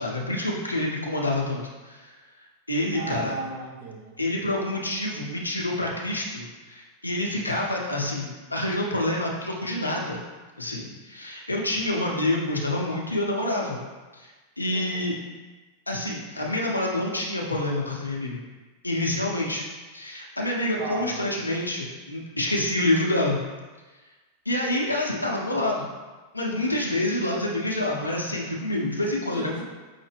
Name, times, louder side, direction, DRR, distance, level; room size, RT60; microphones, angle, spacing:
voice 1, 0.0-2.1 2.7-3.3 4.2-10.2 10.6-13.8 14.1-14.3 14.6-15.1 15.9-18.4 18.8-19.6 19.9-23.4 24.5-25.9 26.3-29.6, left 1 dB, 85° left, -2 dB, 0.6 m, -27 dB
voice 2, 2.9-4.2 14.7-15.1 20.8-21.2 29.3-29.6, right 3 dB, 55° right, -1 dB, 0.8 m, -35 dB
5.5 x 2.1 x 3.3 m, 1.3 s
figure-of-eight pair, 90°, 0 cm